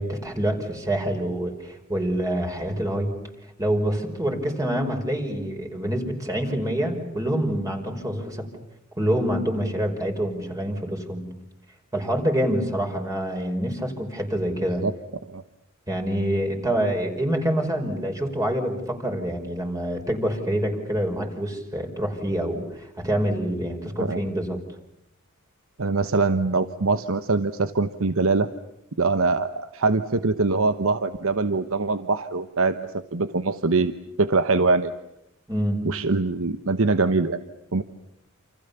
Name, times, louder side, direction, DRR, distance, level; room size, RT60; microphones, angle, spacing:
voice 1, 0.0-3.1 3.6-8.5 9.0-11.3 11.9-14.8 15.9-24.6 35.5-35.8, right 1 dB, 15° right, 3 dB, 5.2 m, -26 dB
voice 2, 25.8-28.5 29.0-34.9 35.8-37.4 37.7-37.8, right 3 dB, 65° right, 11 dB, 1.1 m, -23 dB
29.0 x 29.0 x 7.0 m, 0.81 s
head